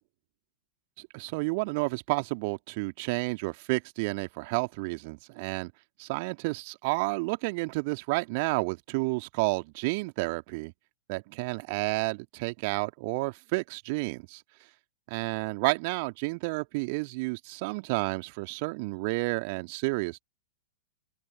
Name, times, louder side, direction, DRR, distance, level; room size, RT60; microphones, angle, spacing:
voice 1, 1.0-5.7 6.0-10.7 11.1-14.4 15.1-20.2, right 28 dB, 45° right, 2.5 m, -31 dB
open air
figure-of-eight pair, 100°, 0 cm